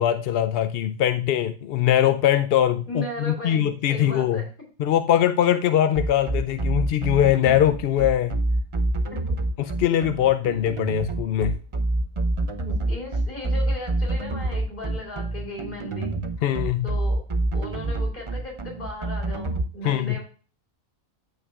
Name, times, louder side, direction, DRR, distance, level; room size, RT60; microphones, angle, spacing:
voice 1, 0.0-4.4 4.8-8.4 9.6-11.6 16.4-16.9 19.8-20.2, left 11 dB, 65° left, 11 dB, 0.6 m, -22 dB
voice 2, 2.9-4.5 9.1-9.4 12.6-16.1 16.8-17.2 17.5-20.2, left 1 dB, 35° left, -1 dB, 3.9 m, -36 dB
sound 1, 5.9-19.6, right 2 dB, 35° right, 0.5 m, -26 dB
13.5 x 5.7 x 2.4 m, 0.37 s
omnidirectional pair, 1.4 m